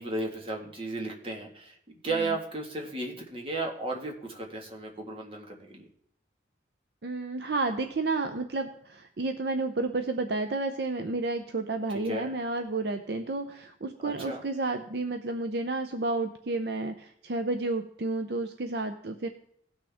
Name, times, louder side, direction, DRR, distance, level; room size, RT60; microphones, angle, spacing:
voice 1, 0.0-1.8 2.0-5.9 11.9-12.3 14.0-14.4, right 2 dB, 30° right, 1 dB, 1.7 m, -34 dB
voice 2, 7.0-19.3, right 3 dB, 60° right, 7 dB, 0.6 m, -31 dB
17.5 x 6.1 x 3.5 m, 0.67 s
head